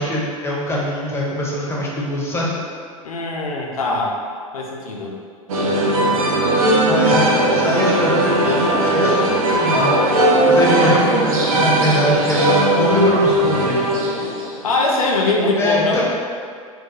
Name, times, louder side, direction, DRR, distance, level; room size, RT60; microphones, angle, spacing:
voice 1, 0.0-2.5 6.8-10.0 10.5-13.9 15.6-16.0, left 1 dB, 15° left, -5 dB, 0.5 m, -22 dB
voice 2, 3.0-4.1 4.5-5.1 14.6-16.0, left 2 dB, 80° left, -1 dB, 0.4 m, -21 dB
sound 1, 5.5-14.7, right 1 dB, 70° right, 0.4 m, -17 dB
2.3 x 2.0 x 2.8 m, 2.1 s
figure-of-eight pair, 90°, 18 cm